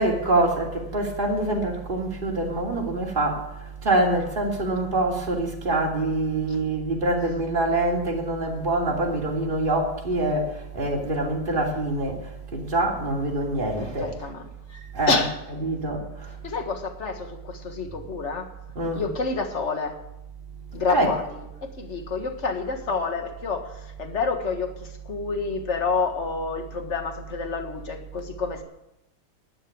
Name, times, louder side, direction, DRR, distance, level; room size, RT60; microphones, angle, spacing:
voice 1, 0.0-3.4 3.8-10.5 10.7-12.2 12.5-14.1 14.9-15.2 15.5-16.0 18.8-19.1 20.9-21.2, right 2 dB, 25° right, -1 dB, 3.0 m, -25 dB
voice 2, 14.0-14.5 15.1-15.3 16.4-18.5 18.9-20.0 20.7-21.4 21.8-28.6, left 4 dB, 35° left, 5 dB, 1.8 m, -28 dB
12.5 x 9.3 x 8.6 m, 0.88 s
omnidirectional pair, 2.4 m